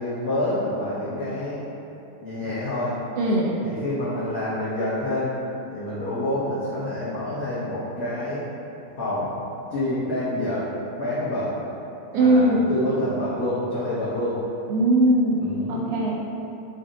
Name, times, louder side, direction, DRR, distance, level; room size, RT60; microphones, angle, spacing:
voice 1, 0.0-1.6 2.2-3.0 3.6-5.3 5.7-8.4 9.0-9.3 9.7-10.6 11.0-11.5 12.1-14.4 15.4-15.9, left 1 dB, 80° left, -11 dB, 1.2 m, -27 dB
voice 2, 3.2-3.6 12.1-12.7 14.7-16.2, right 1 dB, 80° right, -2 dB, 1.8 m, -20 dB
7.2 x 2.6 x 2.6 m, 2.8 s
omnidirectional pair, 3.6 m